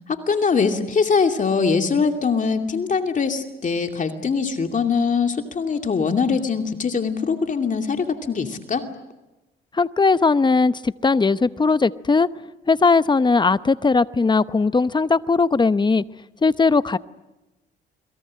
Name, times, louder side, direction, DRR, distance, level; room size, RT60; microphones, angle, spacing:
voice 1, 0.1-8.8, left 5 dB, 40° left, 5 dB, 2.6 m, -22 dB
voice 2, 9.7-12.3 12.7-16.0 16.4-17.0, left 4 dB, 20° left, 14 dB, 0.9 m, -18 dB
29.0 x 22.5 x 7.6 m, 1.0 s
cardioid pair, 90°, 20 cm